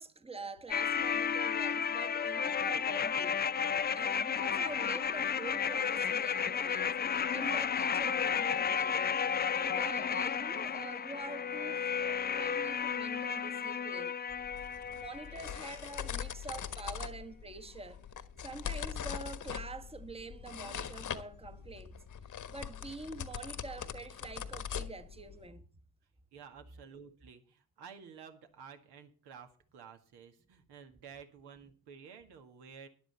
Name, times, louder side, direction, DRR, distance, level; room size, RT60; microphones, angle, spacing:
voice 1, 0.0-3.4 3.9-9.0 9.5-14.2 15.0-18.0 18.4-22.0 22.5-25.7, right 3 dB, 15° right, 1.3 m, -46 dB
sound 1, 0.7-15.7 16.0-16.1, left 7 dB, 25° left, 0.5 m, -33 dB
sound 2, 14.3-25.5, left 8 dB, 45° left, 1.3 m, -42 dB
voice 2, 26.3-32.9, right 6 dB, 65° right, 2.1 m, -52 dB
12.5 x 11.0 x 4.3 m
hypercardioid pair, 45°, 43 cm